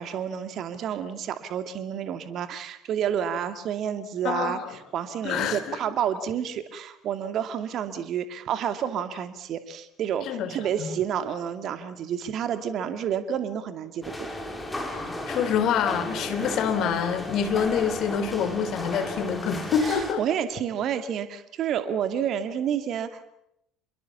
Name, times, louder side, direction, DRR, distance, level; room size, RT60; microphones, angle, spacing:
voice 1, 0.0-14.3 19.8-23.3, right 8 dB, 45° right, 10 dB, 2.5 m, -30 dB
voice 2, 4.2-4.6 5.2-5.8 10.3-10.5 10.8-10.9 14.9-20.2, left 7 dB, 50° left, 9 dB, 3.6 m, -26 dB
sound 1, 14.0-20.1, left 1 dB, 10° left, 5.5 m, -34 dB
28.5 x 22.5 x 7.2 m, 0.79 s
figure-of-eight pair, 60°, 0 cm